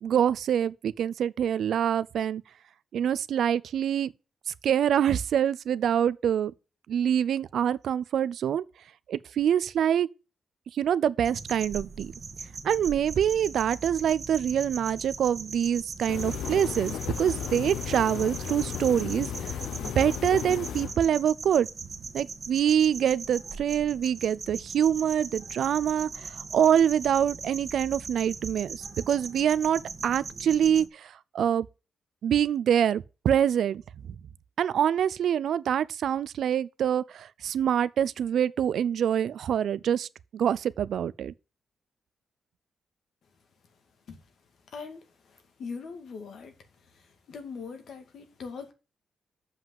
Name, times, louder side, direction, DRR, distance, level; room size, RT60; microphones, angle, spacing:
voice 1, 0.0-2.4 2.9-4.1 4.6-6.5 6.9-8.6 9.1-10.1 10.8-12.1 12.6-19.5 19.8-21.7 22.1-31.7 32.2-33.8 34.6-40.1 40.3-41.3, right 9 dB, 75° right, 0.5 m, -25 dB
sound 1, 11.2-30.9, right 4 dB, 40° right, 1.8 m, -40 dB
sound 2, 16.1-21.1, left 9 dB, 90° left, 0.7 m, -34 dB
voice 2, 44.7-45.0 45.6-46.5 47.3-48.7, left 5 dB, 70° left, 2.0 m, -40 dB
7.3 x 5.7 x 7.6 m
cardioid pair, 90°, 0 cm